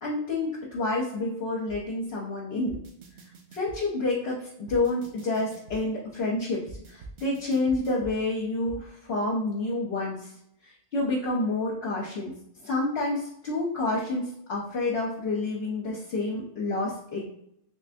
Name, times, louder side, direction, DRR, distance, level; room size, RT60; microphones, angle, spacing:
voice 1, 0.0-2.8 3.5-10.3 10.6-12.3 12.6-17.3, left 2 dB, 60° left, -3 dB, 0.9 m, -29 dB
sound 1, 1.7-1.8 2.7-3.8 4.7-5.8 6.7-8.2 8.7-8.8, right 2 dB, 75° right, 1.0 m, -44 dB
3.3 x 3.3 x 2.6 m, 0.75 s
omnidirectional pair, 1.2 m